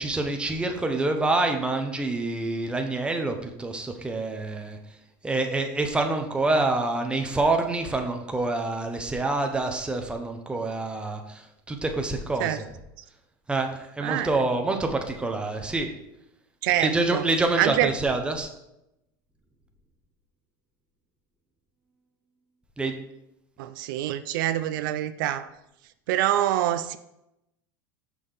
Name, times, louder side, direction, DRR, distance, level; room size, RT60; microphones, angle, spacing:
voice 1, 0.0-4.8 5.2-12.6 13.5-15.9 16.8-18.5 22.8-22.9, right 2 dB, 10° right, 3 dB, 0.8 m, -27 dB
voice 2, 14.0-14.3 16.6-17.3 17.6-17.9 23.6-25.5 26.1-27.0, right 12 dB, 80° right, 11 dB, 0.4 m, -25 dB
6.2 x 5.6 x 3.4 m, 0.87 s
supercardioid pair, 120°, 11 cm